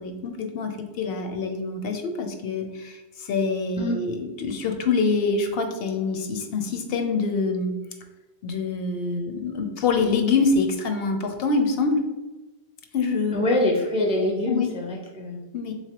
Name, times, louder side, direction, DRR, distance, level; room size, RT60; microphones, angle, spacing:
voice 1, 0.0-7.7 8.4-12.0 12.9-13.5 14.5-14.7 15.5-15.7, left 4 dB, 70° left, 5 dB, 0.7 m, -25 dB
voice 2, 13.3-15.4, left 1 dB, 10° right, -2 dB, 0.3 m, -24 dB
3.4 x 3.1 x 2.9 m, 1.1 s
omnidirectional pair, 1.0 m